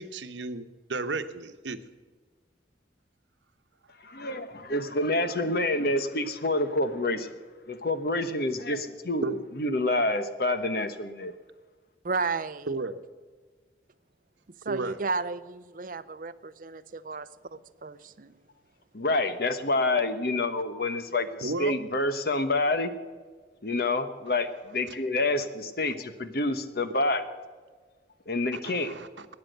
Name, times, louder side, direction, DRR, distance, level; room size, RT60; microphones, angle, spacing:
voice 1, 0.0-1.8 9.2-9.4 12.7-13.0 14.7-15.0 21.4-21.8 25.9-26.0 28.5-29.3, right 3 dB, 85° right, 9 dB, 1.0 m, -33 dB
voice 2, 4.1-7.3 7.7-11.3 18.9-22.9 23.6-27.2 28.3-28.9, left 2 dB, 55° left, 10 dB, 1.1 m, -28 dB
voice 3, 12.0-12.7 14.6-17.2 17.8-18.3, right 4 dB, 45° right, 15 dB, 0.6 m, -33 dB
13.5 x 9.6 x 7.9 m, 1.5 s
head